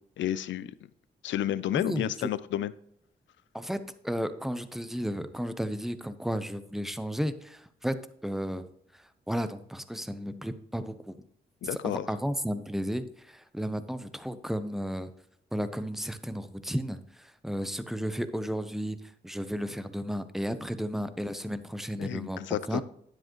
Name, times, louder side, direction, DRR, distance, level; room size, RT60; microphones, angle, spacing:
voice 1, 0.2-0.7 1.2-2.7 11.6-12.1 22.0-22.8, left 12 dB, 80° left, 16 dB, 0.5 m, -31 dB
voice 2, 1.7-2.3 3.5-8.7 9.3-11.2 11.7-15.1 15.5-19.0 19.2-22.8, equal, ahead, 12 dB, 0.8 m, -33 dB
10.0 x 7.7 x 3.1 m, 0.71 s
cardioid pair, 65°, 19 cm